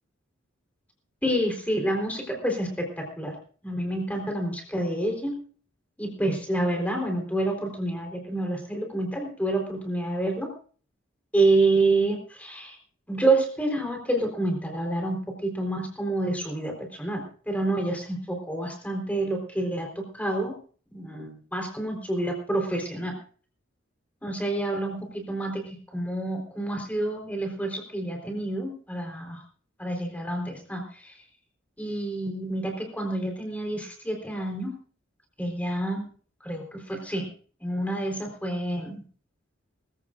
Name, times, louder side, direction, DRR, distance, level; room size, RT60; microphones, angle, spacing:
voice 1, 1.2-3.4 3.6-5.4 6.0-10.5 11.3-12.8 13.1-20.5 20.9-23.2 24.2-29.4 29.8-31.1 31.8-34.8 35.4-36.1 36.4-37.3 37.6-39.0, right 2 dB, 5° left, 2 dB, 4.0 m, -28 dB
23.0 x 15.5 x 2.6 m, 0.42 s
head